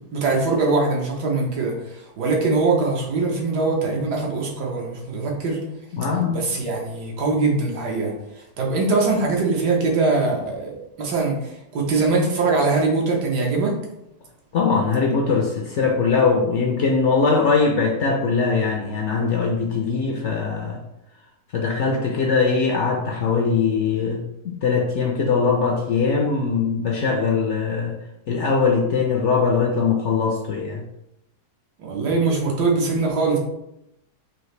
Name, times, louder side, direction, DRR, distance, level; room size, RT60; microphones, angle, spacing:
voice 1, 0.0-5.6 6.3-8.1 8.6-13.7 31.8-33.4, right 3 dB, 85° right, 0 dB, 1.5 m, -22 dB
voice 2, 5.9-6.4 14.5-20.8 21.5-28.0 28.3-30.8, left 5 dB, 65° left, 1 dB, 0.7 m, -21 dB
4.7 x 2.8 x 3.2 m, 0.84 s
omnidirectional pair, 1.7 m